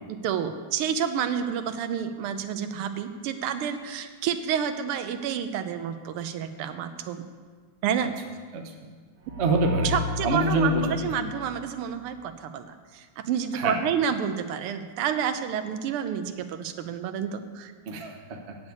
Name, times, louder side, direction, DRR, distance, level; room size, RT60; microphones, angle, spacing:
voice 1, 0.1-7.2 7.8-8.1 9.8-17.7, right 8 dB, 90° right, 9 dB, 1.6 m, -29 dB
voice 2, 8.5-8.9 9.4-10.0 10.2-10.9 11.2-11.3 13.5-13.8 17.9-18.6, right 2 dB, 45° right, 3 dB, 0.9 m, -26 dB
sound 1, 9.2-12.1, left 3 dB, 70° right, 2.8 m, -33 dB
8.0 x 7.0 x 8.3 m, 1.5 s
omnidirectional pair, 2.4 m